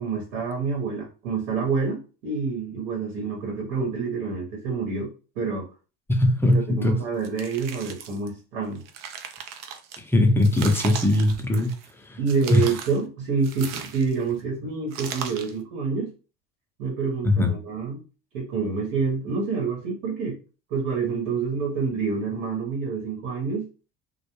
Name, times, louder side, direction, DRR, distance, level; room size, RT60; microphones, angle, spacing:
voice 1, 0.0-5.7 6.5-8.8 12.2-16.1 16.8-18.0 18.3-20.4 20.7-23.7, right 5 dB, 75° right, -1 dB, 1.0 m, -27 dB
voice 2, 6.1-7.0 10.0-11.7 12.0-12.2 12.5-12.7 17.2-17.5, left 1 dB, 5° left, 4 dB, 0.5 m, -20 dB
sound 1, 7.2-8.3 8.7-10.0 10.4-11.9 12.3-13.0 13.4-14.3 14.9-15.6, right 7 dB, 60° right, 0.6 m, -37 dB
2.2 x 2.1 x 3.0 m, 0.35 s
hypercardioid pair, 70°, 37 cm